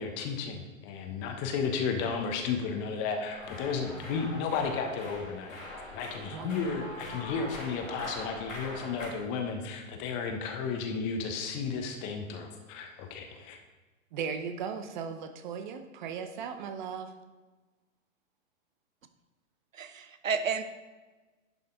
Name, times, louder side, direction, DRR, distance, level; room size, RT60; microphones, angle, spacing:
voice 1, 0.0-5.6 5.9-13.6, left 5 dB, 25° left, 5 dB, 1.0 m, -33 dB
sound 1, 3.3-9.1, left 1 dB, 75° left, 2.9 m, -42 dB
voice 2, 14.1-17.1, right 6 dB, 35° right, 7 dB, 0.7 m, -37 dB
voice 3, 19.8-20.6, right 6 dB, 70° right, 10 dB, 0.9 m, -31 dB
11.0 x 5.5 x 3.8 m, 1.2 s
figure-of-eight pair, 110°, 41 cm